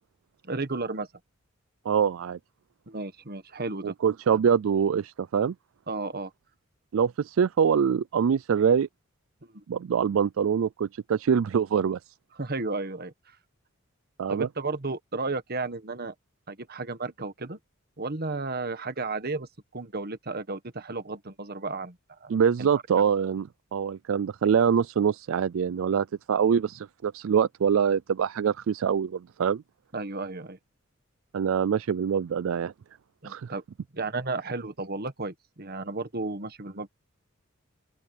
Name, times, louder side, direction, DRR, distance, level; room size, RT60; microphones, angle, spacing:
voice 1, 0.4-1.1 2.9-3.9 5.9-6.3 9.5-9.6 12.4-13.3 14.3-16.1 16.5-17.6 18.0-22.3 22.6-22.7 29.9-30.6 33.2-33.6 33.9-36.9, right 3 dB, 50° right, 1.5 m, -33 dB
voice 2, 1.9-2.4 3.8-5.5 6.9-8.9 9.7-12.0 14.2-14.5 22.3-29.6 31.3-32.7 33.2-33.5, right 7 dB, 70° right, 0.4 m, -24 dB
open air
head